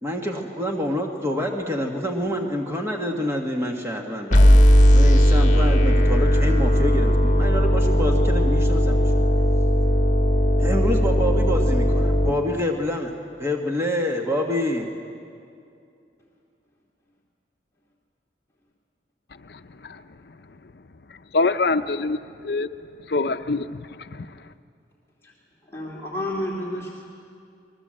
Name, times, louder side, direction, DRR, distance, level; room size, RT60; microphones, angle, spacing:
voice 1, 0.0-4.6 4.9-9.2 10.6-13.1 13.4-14.9, left 1 dB, 15° right, 1 dB, 1.7 m, -27 dB
sound 1, 4.3-12.3, equal, 40° left, 1.9 m, -17 dB
voice 2, 21.3-22.2 22.4-22.7 23.1-23.7 24.0-24.3, left 3 dB, 60° left, 8 dB, 0.6 m, -24 dB
voice 3, 25.7-26.9, left 1 dB, 15° left, -5 dB, 2.9 m, -30 dB
26.5 x 21.5 x 7.7 m, 2.5 s
head